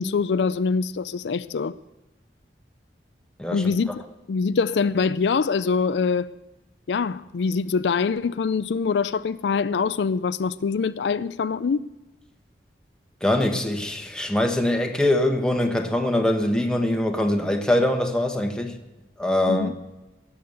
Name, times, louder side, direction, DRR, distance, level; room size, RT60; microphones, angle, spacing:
voice 1, 0.0-1.7 3.5-4.0 4.3-6.3 6.9-11.9 19.5-19.7, left 5 dB, 80° left, 0.4 m, -24 dB
voice 2, 3.4-3.7 13.2-18.7 19.2-19.7, left 1 dB, 5° left, 1.3 m, -23 dB
17.5 x 7.1 x 7.8 m
head